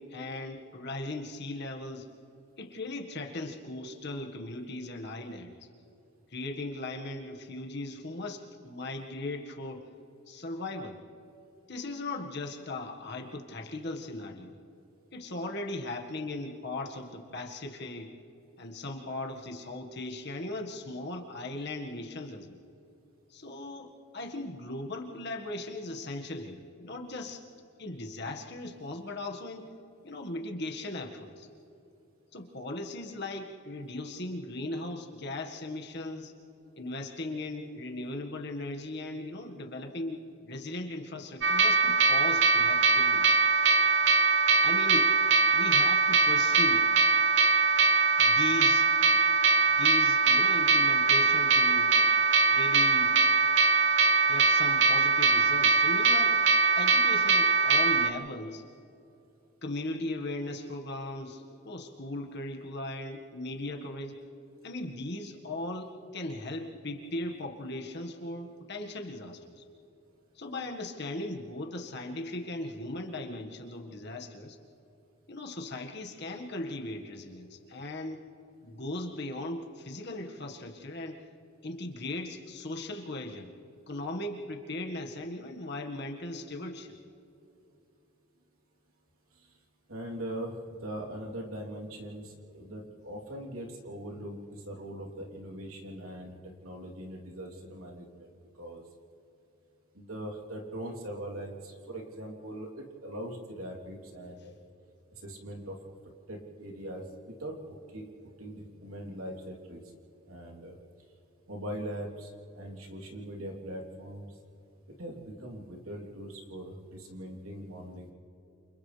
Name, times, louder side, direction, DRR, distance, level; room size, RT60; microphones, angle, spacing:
voice 1, 0.0-2.1 2.6-5.6 6.3-9.8 10.3-11.0 11.7-14.6 15.1-18.1 18.6-22.6 23.3-27.4 27.8-29.7 30.0-31.5 32.3-36.3 36.8-43.3 44.6-45.1 45.5-46.9 48.2-49.2 49.5-52.0 52.4-53.1 54.3-56.4 56.7-58.6 59.6-64.2 64.6-69.6 70.4-74.6 75.3-78.2 78.6-81.2 81.6-83.5 83.9-86.9, left 2 dB, 50° left, 2 dB, 1.8 m, -38 dB
sound 1, 41.4-58.1, right 4 dB, 55° right, 0.9 m, -22 dB
voice 2, 89.9-90.5 90.8-98.8 99.9-104.5 105.2-105.8 106.3-107.6 107.9-108.1 108.4-109.8 110.3-110.8 111.5-114.2 114.9-118.1, right 1 dB, 75° right, -1 dB, 3.4 m, -41 dB
29.0 x 29.0 x 3.4 m, 2.9 s
head